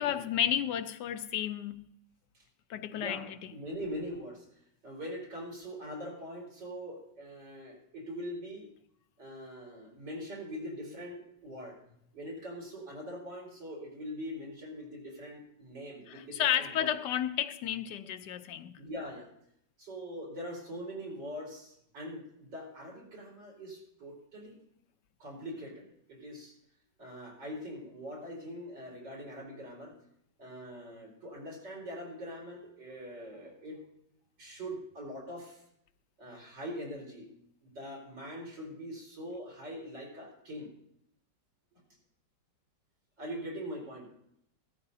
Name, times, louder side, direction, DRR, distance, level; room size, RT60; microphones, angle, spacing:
voice 1, 0.0-1.8 2.7-3.5 16.1-18.8, left 10 dB, 75° left, 1.2 m, -32 dB
voice 2, 2.9-4.5 4.8-8.7 9.2-11.8 12.1-16.9 18.8-19.3 19.8-24.6 25.2-26.6 27.0-29.9 30.4-33.8 34.4-35.6 36.2-37.3 37.8-40.7 43.2-44.1, equal, 80° right, 5.1 m, -42 dB
16.0 x 14.0 x 2.7 m
omnidirectional pair, 1.9 m